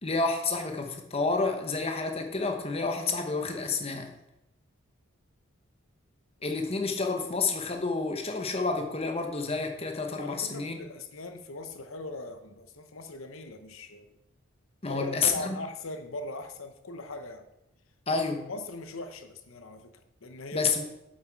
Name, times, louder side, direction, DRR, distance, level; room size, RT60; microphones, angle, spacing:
voice 1, 0.0-4.1 6.4-10.8 14.8-15.6 18.1-18.5 20.5-20.8, left 4 dB, 25° left, 4 dB, 1.0 m, -29 dB
voice 2, 10.2-14.1 14.8-17.5 18.5-20.7, left 2 dB, 70° left, 9 dB, 0.9 m, -40 dB
8.3 x 7.8 x 4.6 m, 0.89 s
head